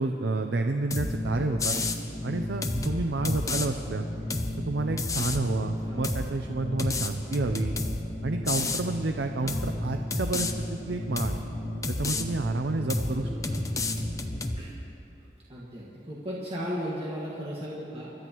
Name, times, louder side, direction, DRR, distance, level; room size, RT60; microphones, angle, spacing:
voice 1, 0.0-1.8 2.2-4.1 4.6-7.8 8.2-11.4 11.9-13.3, right 2 dB, 70° right, 5 dB, 0.6 m, -30 dB
sound 1, 0.9-14.5, left 1 dB, 40° left, 1.5 m, -35 dB
sound 2, 0.9-1.2 1.6-2.0 2.6-3.7 4.3-4.6 5.0-5.5 6.0-6.3 6.8-8.0 8.5-8.8 9.5-9.7 10.1-10.5 11.2-11.4 11.8-12.2 12.9-13.2 13.4-14.6, left 3 dB, 20° left, 0.7 m, -30 dB
voice 2, 13.2-13.6 14.6-14.8 15.5-18.1, equal, 35° right, -6 dB, 1.8 m, -36 dB
25.0 x 12.5 x 3.0 m, 2.9 s
head